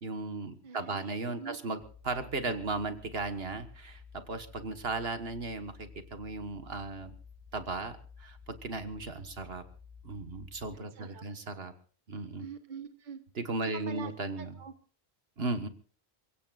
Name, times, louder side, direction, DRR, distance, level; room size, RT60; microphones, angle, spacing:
voice 1, 0.0-7.1 7.5-9.6 10.0-11.7 12.1-12.5 13.3-14.5 15.4-15.7, right 3 dB, 70° right, 9 dB, 1.7 m, -36 dB
voice 2, 0.6-1.6 10.9-11.2 12.4-13.2 13.6-14.1 14.4-14.7, right 7 dB, 50° right, 8 dB, 1.3 m, -44 dB
sound 1, 1.8-10.7, left 5 dB, 10° left, 5.2 m, -53 dB
28.5 x 16.5 x 2.5 m, 0.43 s
omnidirectional pair, 1.1 m